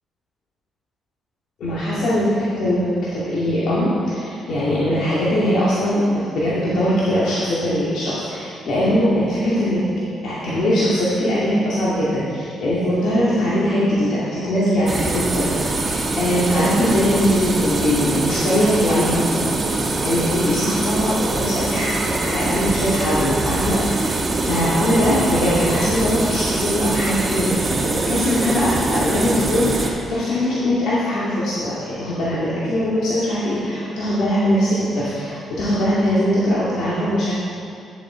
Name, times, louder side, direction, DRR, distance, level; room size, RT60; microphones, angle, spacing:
voice 1, 1.6-9.8 10.2-37.3, equal, 75° left, -9 dB, 2.2 m, -21 dB
sound 1, 14.9-29.9, right 2 dB, 30° right, 1.3 m, -23 dB
11.0 x 7.7 x 4.5 m, 2.5 s
cardioid pair, 90°, 0 cm